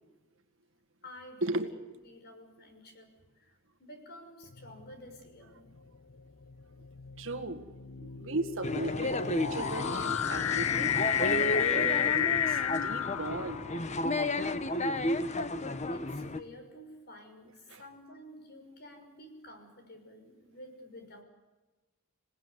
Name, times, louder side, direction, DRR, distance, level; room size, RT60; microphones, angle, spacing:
voice 1, 1.0-5.7 15.0-15.2 15.9-21.2, left 1 dB, 50° left, 6 dB, 5.8 m, -51 dB
sound 1, 4.5-4.9 5.8-14.0, left 8 dB, 85° left, 0.9 m, -32 dB
voice 2, 7.2-13.6 17.7-17.8, right 2 dB, 65° right, 6 dB, 1.9 m, -37 dB
sound 2, 8.6-16.4, left 2 dB, 35° left, 1.1 m, -32 dB
27.5 x 18.5 x 9.7 m, 1.2 s
head